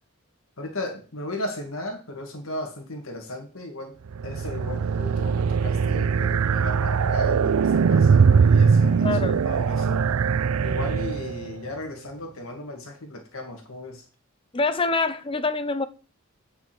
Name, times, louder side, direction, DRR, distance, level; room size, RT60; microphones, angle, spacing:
voice 1, 0.6-4.0 4.2-9.2 9.5-10.1 10.6-14.0, left 1 dB, 75° left, 2.0 m, -35 dB
sound 1, 4.1-11.5, right 6 dB, 90° right, 0.4 m, -21 dB
voice 2, 9.0-9.4 14.5-15.9, left 3 dB, 25° left, 0.6 m, -25 dB
9.3 x 5.6 x 6.1 m
head